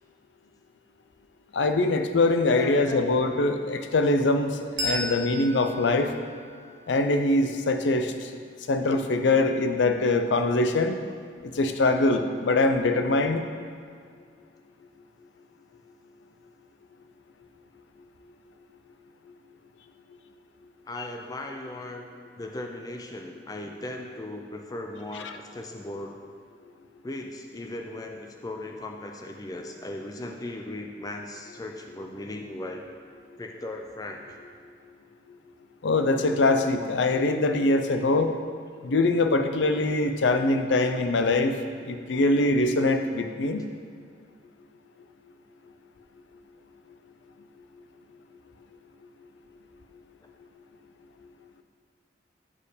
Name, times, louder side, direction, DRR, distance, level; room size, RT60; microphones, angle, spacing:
voice 1, 1.5-6.1 6.9-8.1 8.7-11.0 11.6-13.4 25.2-25.3 35.8-38.3 38.8-41.5 41.9-43.6, left 2 dB, 80° left, 7 dB, 0.5 m, -23 dB
voice 2, 2.6-3.1 20.9-22.1 22.4-26.2 27.0-32.8 33.4-34.2 42.0-42.1, left 1 dB, 20° left, 3 dB, 0.4 m, -37 dB
Bell, 4.8-7.9, equal, 80° right, 1.1 m, -36 dB
7.4 x 4.5 x 4.9 m, 2.1 s
head